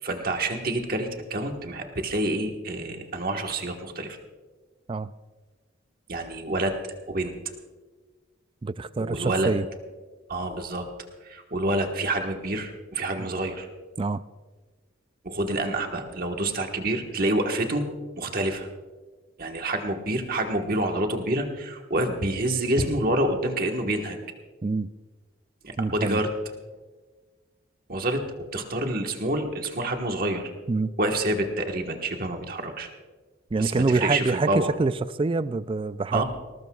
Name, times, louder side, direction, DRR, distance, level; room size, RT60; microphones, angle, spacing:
voice 1, 0.0-4.2 6.1-6.7 7.1-7.3 9.0-9.5 10.3-10.9 11.2-13.7 15.2-17.8 18.1-18.7 19.4-24.2 25.6-26.3 27.9-28.2 28.5-30.4 31.0-32.9 33.6-34.7 36.1-36.2, right 1 dB, 45° right, 3 dB, 1.4 m, -27 dB
voice 2, 8.6-9.7 14.0-14.2 24.6-24.9 25.8-26.2 30.7-30.9 33.5-36.2, right 3 dB, 25° right, 15 dB, 0.3 m, -26 dB
20.0 x 19.0 x 2.4 m, 1.3 s
head